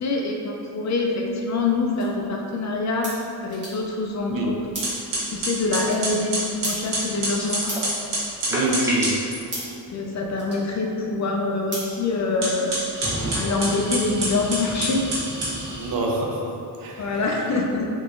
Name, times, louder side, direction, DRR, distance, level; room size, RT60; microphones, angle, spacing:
voice 1, 0.0-3.1 3.4-4.9 5.3-7.6 9.9-12.7 13.3-15.0 17.0-17.9, left 3 dB, 45° left, 0 dB, 0.4 m, -25 dB
sound 1, 1.2-12.7, equal, 25° right, 1.3 m, -41 dB
sound 2, 4.3-4.4 4.8-9.2 12.3-16.0, right 1 dB, 80° right, 1.4 m, -28 dB
sound 3, 7.4-8.1 8.3-9.3, equal, 5° right, 0.8 m, -29 dB
voice 2, 8.5-9.2 15.8-17.1, right 2 dB, 55° right, -1 dB, 0.6 m, -26 dB
3.6 x 2.9 x 2.5 m, 2.6 s
cardioid pair, 95°, 42 cm